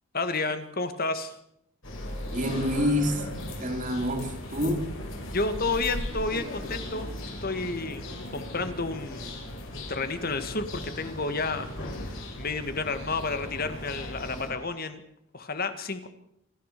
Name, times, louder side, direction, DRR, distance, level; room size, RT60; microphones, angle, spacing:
voice 1, 0.1-1.3 5.3-8.1 8.3-9.3 9.7-15.0 15.3-16.1, left 3 dB, 45° left, 10 dB, 2.0 m, -31 dB
sound 1, 1.8-14.5, left 1 dB, 60° left, 7.9 m, -37 dB
voice 2, 2.3-3.3 3.6-5.0, left 1 dB, 35° right, 5 dB, 3.3 m, -27 dB
27.5 x 14.5 x 6.9 m, 0.75 s
head